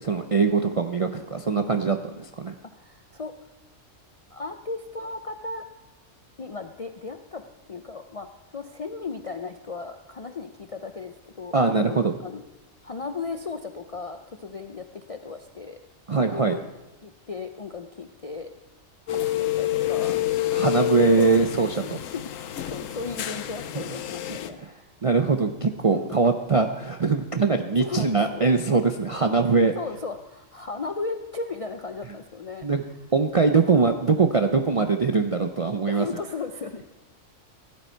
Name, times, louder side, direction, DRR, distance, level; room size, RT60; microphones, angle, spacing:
voice 1, 0.0-2.5 11.5-12.1 16.1-16.6 20.5-22.0 23.7-23.8 24.6-24.7 25.0-29.7 32.6-32.8 33.1-36.0, right 4 dB, 50° right, 5 dB, 0.4 m, -22 dB
voice 2, 2.6-3.3 4.3-5.7 6.4-7.4 7.7-8.3 8.5-12.4 12.8-15.8 16.3-16.6 17.0-18.5 19.1-20.2 21.2-21.5 21.7-22.3 22.7-24.9 25.9-26.2 27.8-28.4 29.7-32.7 35.9-36.9, left 4 dB, 50° left, 6 dB, 0.4 m, -36 dB
sound 1, 19.1-24.5, left 14 dB, 80° left, 1.1 m, -28 dB
16.0 x 11.0 x 4.5 m, 1.0 s
omnidirectional pair, 1.4 m